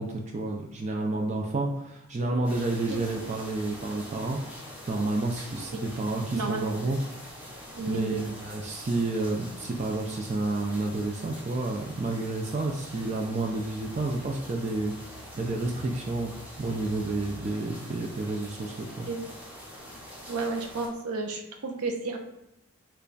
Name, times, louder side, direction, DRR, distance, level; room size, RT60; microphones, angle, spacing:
voice 1, 0.0-4.4 4.9-7.0 7.9-19.1, right 2 dB, 30° right, 1 dB, 0.3 m, -30 dB
sound 1, 2.4-20.9, equal, 5° right, 0.7 m, -44 dB
voice 2, 6.3-6.8 7.7-8.3 19.1-19.2 20.3-22.2, right 3 dB, 85° right, 4 dB, 0.6 m, -32 dB
3.3 x 2.3 x 3.9 m, 0.87 s
head